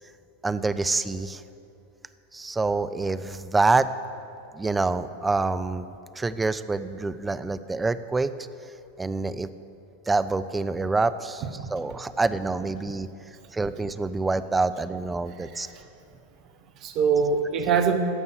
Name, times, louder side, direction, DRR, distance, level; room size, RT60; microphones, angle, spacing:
voice 1, 0.4-1.4 2.3-3.9 4.5-5.9 6.2-8.5 9.0-9.5 10.1-11.4 11.7-13.1 13.5-15.7, right 3 dB, 10° right, 12 dB, 0.4 m, -26 dB
voice 2, 11.6-12.0 15.4-15.9 16.8-18.0, right 6 dB, 35° right, 7 dB, 1.0 m, -25 dB
14.5 x 5.4 x 7.9 m, 2.8 s
figure-of-eight pair, 90°, 0 cm